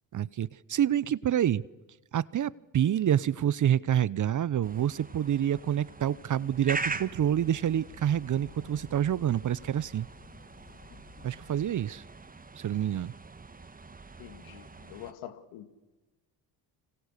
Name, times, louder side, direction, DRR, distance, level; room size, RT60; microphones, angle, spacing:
voice 1, 0.1-1.6 2.1-10.1 11.2-12.0 12.6-13.1, right 10 dB, 40° right, 0.8 m, -27 dB
sound 1, 4.6-15.1, right 3 dB, 15° right, 1.5 m, -42 dB
sound 2, 6.5-11.7, left 6 dB, 25° left, 1.7 m, -54 dB
voice 2, 14.2-15.7, left 11 dB, 75° left, 2.6 m, -45 dB
29.5 x 26.0 x 6.8 m
supercardioid pair, 70°, 49 cm